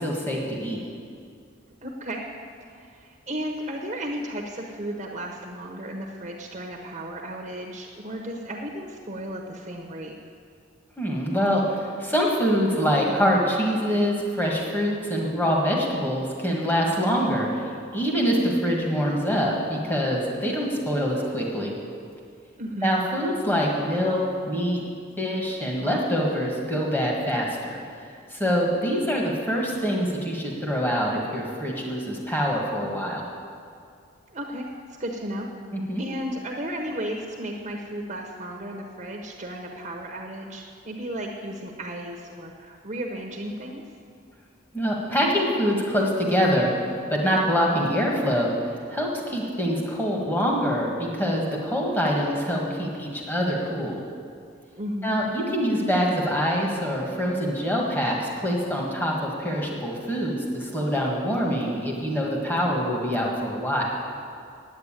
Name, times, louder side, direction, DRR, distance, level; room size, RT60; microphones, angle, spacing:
voice 1, 0.0-0.8 11.0-17.6 17.9-21.7 22.8-24.8 25.2-27.8 28.3-33.2 35.7-36.0 44.7-46.7 47.1-48.5 48.9-54.0 55.0-63.9, equal, 10° left, -2 dB, 1.7 m, -25 dB
voice 2, 1.8-2.2 2.6-10.1 22.6-22.9 34.3-34.7 35.0-35.5 36.0-43.8 54.8-55.1, equal, 35° right, 0 dB, 1.0 m, -34 dB
9.5 x 9.1 x 9.0 m, 2.3 s
head